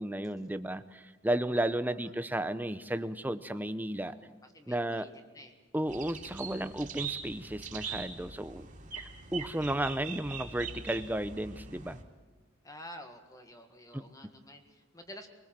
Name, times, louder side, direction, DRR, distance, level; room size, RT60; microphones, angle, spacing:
voice 1, 0.0-4.2 4.7-5.1 5.7-8.7 9.0-12.0 13.9-14.0, right 1 dB, 10° right, 11 dB, 0.7 m, -33 dB
voice 2, 4.0-5.6 12.6-15.3, left 1 dB, 15° left, 6 dB, 1.7 m, -50 dB
sound 1, 5.9-12.0, right 6 dB, 40° right, 2.7 m, -42 dB
24.0 x 19.5 x 7.5 m, 1.3 s
head